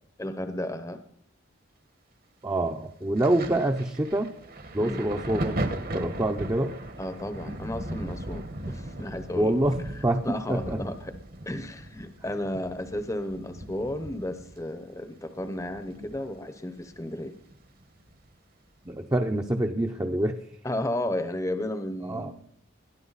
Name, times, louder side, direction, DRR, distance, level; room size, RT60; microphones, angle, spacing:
voice 1, 0.2-1.0 4.8-5.0 7.0-9.6 10.2-11.1 11.4-17.4 20.6-22.3, left 1 dB, 15° left, 9 dB, 0.9 m, -33 dB
voice 2, 2.4-4.3 4.7-5.7 5.9-6.8 9.4-9.8 10.0-10.8 18.9-20.4 22.0-22.3, right 1 dB, 15° right, 3 dB, 0.7 m, -26 dB
Thunder, 3.2-16.5 16.8-18.1 19.0-19.1, right 1 dB, 50° right, 1.4 m, -38 dB
21.0 x 13.0 x 4.1 m, 0.68 s
head